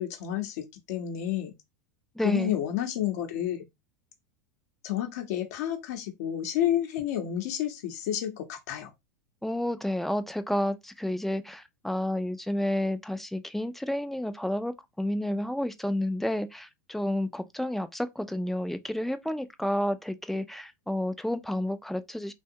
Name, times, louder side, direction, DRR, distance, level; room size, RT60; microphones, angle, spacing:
voice 1, 0.0-1.5 2.2-3.6 4.8-8.9, left 11 dB, 70° left, 0.7 m, -30 dB
voice 2, 2.2-2.6 9.4-14.7 15.0-22.3, left 1 dB, 5° left, 0.3 m, -30 dB
2.7 x 2.2 x 2.6 m
hypercardioid pair, 115°, 9 cm